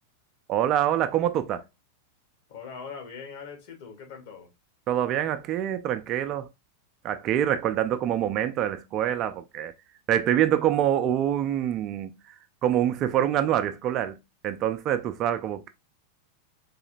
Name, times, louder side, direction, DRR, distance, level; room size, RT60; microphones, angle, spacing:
voice 1, 0.5-1.6 4.9-6.5 7.0-9.7 10.1-12.1 12.6-14.2 14.4-15.7, right 11 dB, 35° right, 0.4 m, -25 dB
voice 2, 2.5-4.5, left 6 dB, 50° left, 1.1 m, -41 dB
4.0 x 2.8 x 2.5 m
figure-of-eight pair, 90°, 0 cm